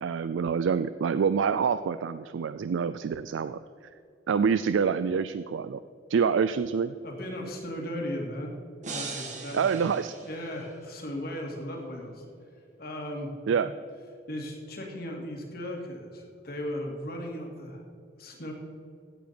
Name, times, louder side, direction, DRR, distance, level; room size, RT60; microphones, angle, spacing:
voice 1, 0.0-3.6 4.3-5.8 6.1-7.0 9.5-10.2 13.5-13.7, right 6 dB, 85° right, 13 dB, 0.4 m, -26 dB
voice 2, 7.0-8.5 8.9-9.9 10.2-12.3 12.8-13.3 14.3-17.8 18.2-18.5, left 1 dB, 55° left, 0 dB, 2.4 m, -36 dB
sound 1, 8.8-11.0, right 4 dB, 40° right, 1.5 m, -40 dB
16.0 x 8.5 x 4.4 m, 2.4 s
head